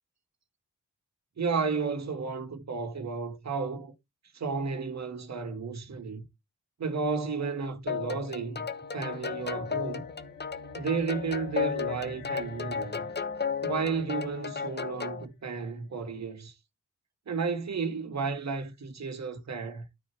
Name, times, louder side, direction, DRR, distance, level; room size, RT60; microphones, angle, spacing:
voice 1, 1.4-3.9 4.3-6.3 6.8-8.7 8.9-10.1 10.7-13.1 13.6-16.6 17.3-19.9, right 5 dB, 60° right, 2.0 m, -32 dB
sound 1, 7.9-15.2, left 6 dB, 35° left, 1.1 m, -34 dB
sound 2, 8.6-15.3, left 2 dB, 85° left, 1.9 m, -50 dB
13.0 x 4.4 x 3.4 m
cardioid pair, 55°, 31 cm